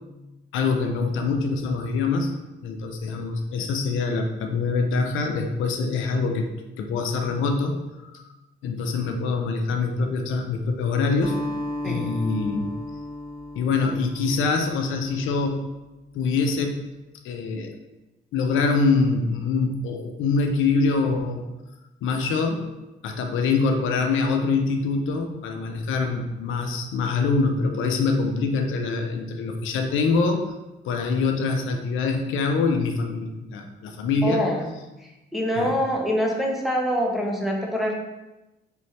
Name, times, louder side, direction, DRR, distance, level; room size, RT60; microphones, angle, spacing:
voice 1, 0.5-6.5 6.8-8.2 8.6-11.4 11.8-12.7 13.6-15.7 16.1-16.8 17.2-17.7 18.3-21.5 22.0-22.7 23.0-30.5 30.8-34.4 35.6-35.8, left 4 dB, 85° left, 4 dB, 0.6 m, -24 dB
Acoustic guitar, 11.2-15.7, left 1 dB, 15° left, 1.2 m, -35 dB
voice 2, 34.2-34.7 35.3-37.9, equal, ahead, -1 dB, 0.9 m, -25 dB
3.5 x 3.2 x 4.2 m, 1.0 s
cardioid pair, 90°, 20 cm